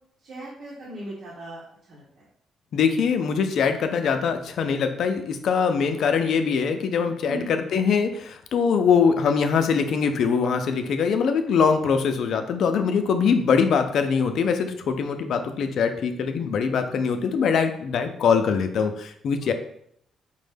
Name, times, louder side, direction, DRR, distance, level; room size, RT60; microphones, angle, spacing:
voice 1, 0.2-2.0 7.3-7.6 17.2-17.3, right 1 dB, 65° right, -7 dB, 1.1 m, -38 dB
voice 2, 2.7-19.5, left 6 dB, 65° left, 6 dB, 0.4 m, -23 dB
5.1 x 2.1 x 3.3 m, 0.68 s
cardioid pair, 90°, 0 cm